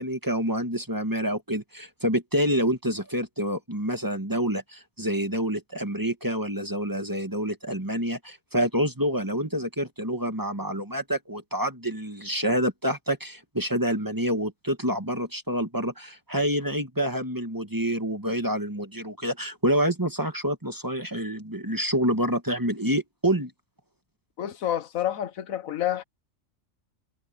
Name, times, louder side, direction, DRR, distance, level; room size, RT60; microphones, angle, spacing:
voice 1, 0.0-23.5, equal, 15° right, 1.7 m, -27 dB
voice 2, 24.4-26.0, left 11 dB, 80° left, 1.3 m, -28 dB
omnidirectional pair, 1.4 m